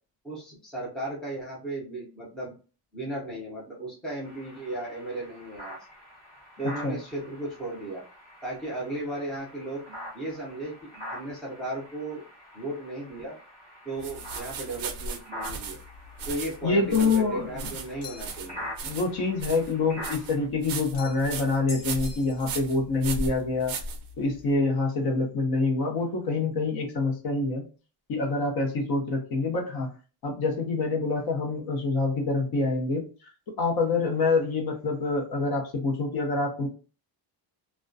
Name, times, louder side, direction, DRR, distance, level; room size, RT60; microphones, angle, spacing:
voice 1, 0.2-2.5 2.9-5.8 6.6-8.0 8.4-9.8 10.1-12.2 12.5-13.4 13.8-15.8 16.3-18.6, right 1 dB, ahead, -4 dB, 0.5 m, -35 dB
sound 1, 4.2-20.5, equal, 15° left, 0.9 m, -45 dB
sound 2, 14.0-24.5, right 3 dB, 50° right, 0.5 m, -37 dB
voice 2, 16.6-17.7 18.8-23.7 24.2-27.6 28.1-29.9 30.2-33.0 33.6-36.7, left 3 dB, 50° left, 2 dB, 0.7 m, -26 dB
sound 3, 18.0-18.5 20.9-21.3 21.7-22.7, left 4 dB, 80° left, 1.1 m, -44 dB
2.2 x 2.2 x 2.5 m, 0.35 s
cardioid pair, 175°, 47 cm